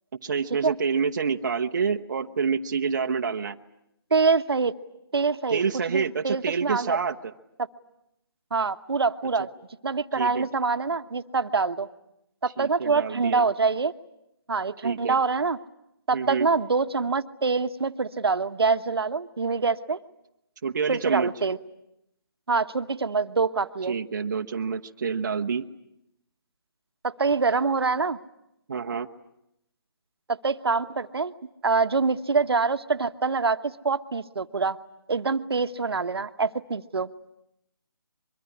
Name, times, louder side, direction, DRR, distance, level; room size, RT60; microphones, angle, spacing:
voice 1, 0.2-3.6 5.5-7.3 9.4-9.5 10.1-10.5 12.6-13.5 14.8-15.2 16.1-16.5 20.6-21.3 23.9-25.6 28.7-29.1, right 6 dB, 45° right, 5 dB, 0.9 m, -28 dB
voice 2, 4.1-4.7 5.1-5.6 5.9-7.0 8.5-9.5 9.8-11.9 12.4-13.9 14.5-15.6 16.1-20.0 20.9-21.6 22.5-24.0 27.0-28.2 30.3-31.3 31.6-34.8 35.1-37.1, right 4 dB, 75° right, 11 dB, 1.1 m, -25 dB
24.0 x 23.5 x 9.8 m, 0.82 s
hypercardioid pair, 165°, 13 cm